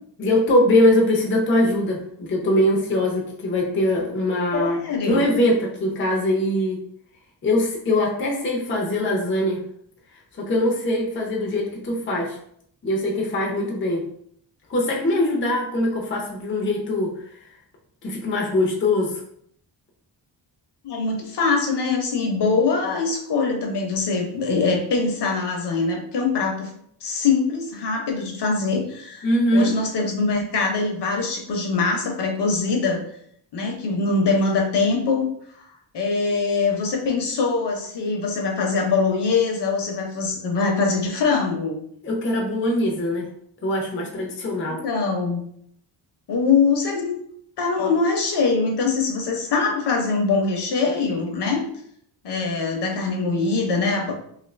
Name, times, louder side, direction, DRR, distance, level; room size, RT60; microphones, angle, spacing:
voice 1, 0.2-6.8 7.4-9.6 10.4-12.4 12.8-14.0 14.7-17.1 17.4-17.5 18.0-19.2 29.2-29.7 42.0-43.3 43.6-44.8, left 1 dB, 25° left, -1 dB, 0.5 m, -22 dB
voice 2, 4.5-5.4 20.8-26.7 27.0-29.3 29.5-33.0 33.5-35.3 35.9-41.8 44.8-45.4 46.3-47.2 47.6-51.6 52.2-54.1, left 4 dB, 60° left, 1 dB, 0.7 m, -23 dB
2.8 x 2.4 x 3.1 m, 0.67 s
wide cardioid pair, 165°, 46 cm